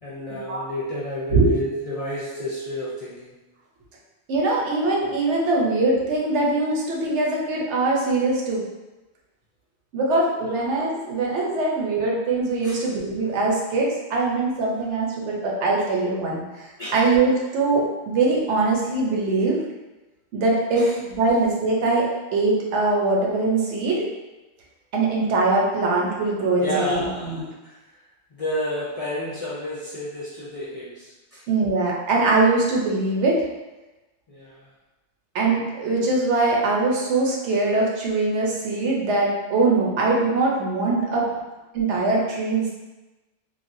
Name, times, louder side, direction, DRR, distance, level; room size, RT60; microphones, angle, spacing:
voice 1, 0.0-3.4 10.4-10.6 12.6-12.8 13.2-13.3 16.8-17.0 20.7-21.0 26.6-28.0 28.3-31.4 34.3-34.7 41.3-41.4, left 1 dB, 45° left, -8 dB, 0.4 m, -31 dB
voice 2, 4.3-8.6 9.9-19.6 20.3-24.0 24.9-27.4 31.5-33.4 35.3-41.3 41.7-42.7, right 3 dB, 75° right, -3 dB, 1.0 m, -22 dB
3.2 x 2.3 x 2.5 m, 1.1 s
omnidirectional pair, 1.2 m